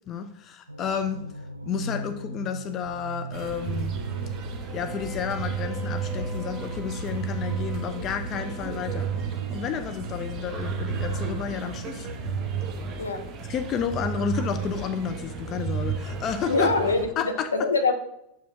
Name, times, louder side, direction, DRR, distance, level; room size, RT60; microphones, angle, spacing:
voice 1, 0.1-1.3 1.6-4.0 4.7-9.1 9.5-12.1 13.4-16.7 17.2-17.5, left 7 dB, 30° left, 9 dB, 0.4 m, -31 dB
sound 1, 0.7-12.7, equal, 85° right, 0.4 m, -38 dB
sound 2, 3.3-17.1, right 6 dB, 30° right, 1.1 m, -33 dB
Bowed string instrument, 4.5-9.6, right 3 dB, 5° left, 1.0 m, -43 dB
voice 2, 13.0-13.3 16.5-17.9, left 3 dB, 75° left, 6 dB, 0.7 m, -24 dB
7.0 x 5.0 x 3.5 m, 0.81 s
figure-of-eight pair, 90°, 0 cm